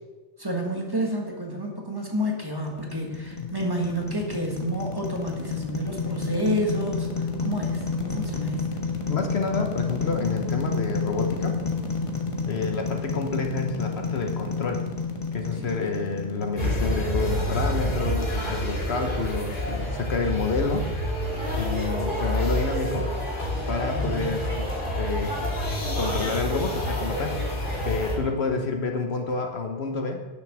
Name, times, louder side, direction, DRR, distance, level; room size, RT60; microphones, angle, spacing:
voice 1, 0.4-8.7 15.5-15.7 23.9-24.4, equal, 20° right, 0 dB, 1.6 m, -30 dB
sound 1, 2.4-17.6, left 4 dB, 25° left, 1.3 m, -30 dB
voice 2, 9.1-11.5 12.5-14.8 15.3-20.9 21.6-23.1 23.7-25.4 26.0-27.4 27.8-30.3, left 4 dB, 60° left, 4 dB, 1.1 m, -29 dB
sound 2, 16.6-28.2, equal, 45° left, 2.3 m, -28 dB
10.5 x 6.7 x 6.2 m, 1.3 s
omnidirectional pair, 1.2 m